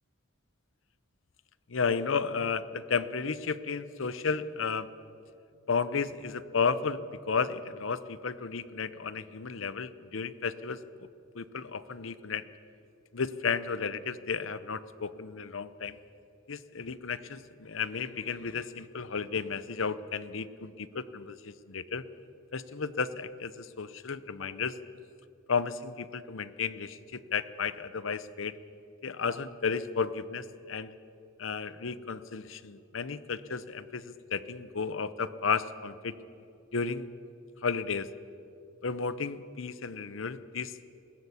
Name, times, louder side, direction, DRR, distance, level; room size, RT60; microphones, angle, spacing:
voice 1, 1.7-4.9 5.7-11.1 11.3-12.4 13.1-16.0 16.5-22.0 22.5-24.8 25.5-28.5 29.0-30.9 31.4-36.2 36.7-37.1 37.6-38.1 38.8-40.8, left 5 dB, 75° left, 15 dB, 0.8 m, -33 dB
20.5 x 16.0 x 8.3 m, 2.7 s
head